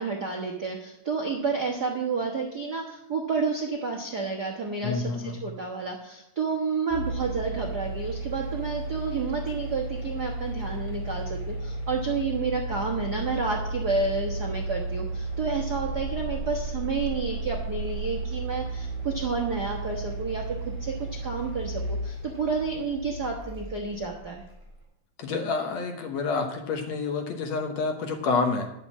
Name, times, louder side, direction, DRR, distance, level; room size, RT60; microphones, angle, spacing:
voice 1, 0.0-24.4, right 4 dB, 60° right, 0 dB, 1.0 m, -30 dB
voice 2, 4.8-5.5 25.2-28.7, left 4 dB, 65° left, 4 dB, 2.0 m, -28 dB
sound 1, 6.9-24.7, right 2 dB, 5° left, 4.4 m, -34 dB
10.5 x 6.8 x 7.3 m, 0.84 s
omnidirectional pair, 3.7 m